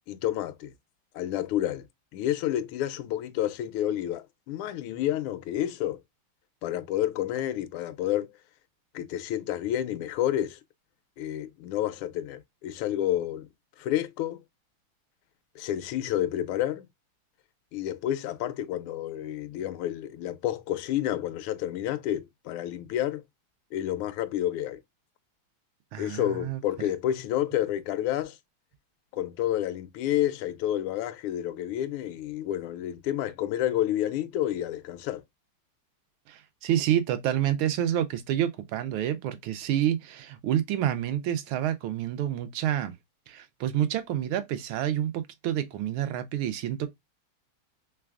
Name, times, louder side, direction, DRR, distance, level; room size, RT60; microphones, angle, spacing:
voice 1, 0.1-0.7 1.1-1.9 2.1-6.0 6.6-8.3 8.9-10.6 11.2-13.5 13.8-14.4 15.5-16.9 17.7-23.2 23.7-24.8 26.0-28.4 29.1-35.2, left 12 dB, 90° left, 1.4 m, -29 dB
voice 2, 25.9-26.6 36.3-42.9 43.3-46.9, right 11 dB, 80° right, 1.5 m, -28 dB
3.9 x 3.4 x 2.3 m
omnidirectional pair, 2.3 m